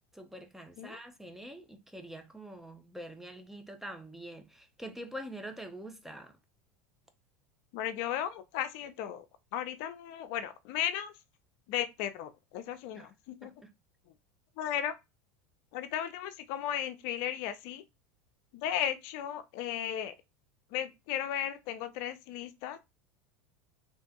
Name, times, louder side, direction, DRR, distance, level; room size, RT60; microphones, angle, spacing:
voice 1, 0.1-6.4 12.9-13.1 13.4-13.7, right 1 dB, 5° right, 0.5 m, -45 dB
voice 2, 7.7-9.3 9.5-11.1 11.7-13.5 14.6-14.9 15.7-17.8 18.5-20.2 20.7-22.8, left 10 dB, 60° left, 0.4 m, -35 dB
3.2 x 2.6 x 2.2 m
hypercardioid pair, 95°, 8 cm